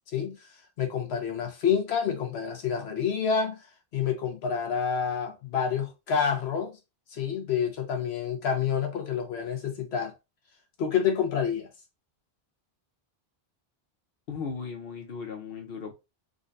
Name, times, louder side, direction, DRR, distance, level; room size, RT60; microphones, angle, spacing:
voice 1, 0.8-3.6 3.9-6.8 7.1-10.1 10.8-11.7, left 7 dB, 90° left, 1.1 m, -28 dB
voice 2, 14.3-15.9, left 5 dB, 70° left, 1.0 m, -36 dB
3.8 x 2.3 x 2.6 m
omnidirectional pair, 1.0 m